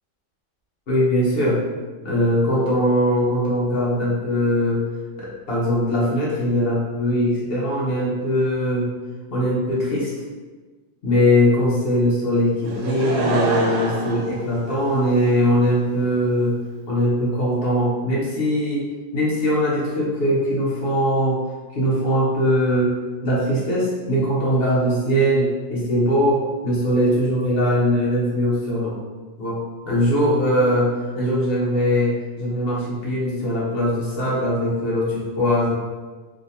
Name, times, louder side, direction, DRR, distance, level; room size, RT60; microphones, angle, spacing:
voice 1, 0.9-1.6 2.0-4.8 5.2-8.9 9.3-10.1 11.0-16.5 16.9-18.9 19.1-21.4 21.7-22.9 23.2-28.9 29.4-29.6 29.9-35.7, equal, 50° left, -6 dB, 1.1 m, -21 dB
Laughter / Crowd, 12.6-15.3 16.0-16.1, right 3 dB, 85° right, 1.0 m, -26 dB
3.6 x 2.5 x 2.7 m, 1.3 s
omnidirectional pair, 1.3 m